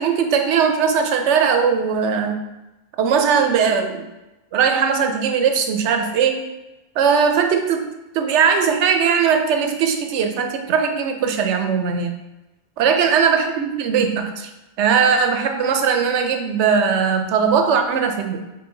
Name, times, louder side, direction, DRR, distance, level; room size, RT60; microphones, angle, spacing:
voice 1, 0.0-2.4 3.0-4.1 4.5-6.5 7.0-7.9 8.1-12.1 12.8-14.5 14.8-18.4, right 6 dB, 75° right, 5 dB, 0.9 m, -19 dB
3.8 x 3.7 x 3.8 m, 1.0 s
omnidirectional pair, 1.2 m